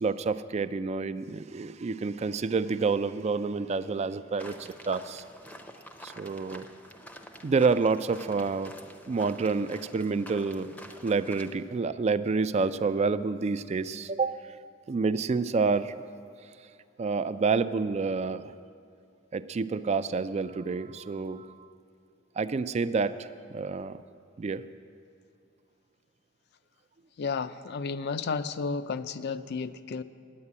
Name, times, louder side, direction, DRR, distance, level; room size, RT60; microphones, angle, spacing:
voice 1, 0.0-5.2 6.0-6.7 7.4-8.7 9.1-10.7 11.0-14.3 14.9-16.0 17.0-18.5 19.3-21.5 22.4-24.0 24.4-24.6, right 4 dB, 35° right, 13 dB, 0.3 m, -28 dB
sound 1, 4.4-11.5, equal, 10° left, 0.6 m, -48 dB
voice 2, 27.2-30.0, left 5 dB, 55° left, 13 dB, 0.4 m, -32 dB
9.6 x 9.6 x 8.5 m, 2.3 s
head